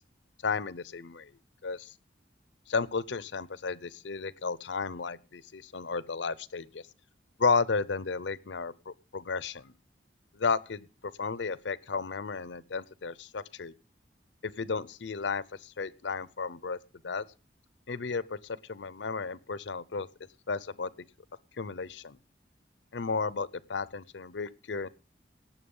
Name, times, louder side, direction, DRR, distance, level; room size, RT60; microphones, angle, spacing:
voice 1, 0.4-1.3 1.6-1.9 2.7-6.8 7.4-9.7 10.3-10.9 11.2-13.7 14.4-16.8 17.0-17.2 17.9-20.1 20.5-20.9 21.6-22.2 22.9-24.9, left 4 dB, 85° left, 19 dB, 0.7 m, -33 dB
18.5 x 7.1 x 5.5 m, 0.35 s
head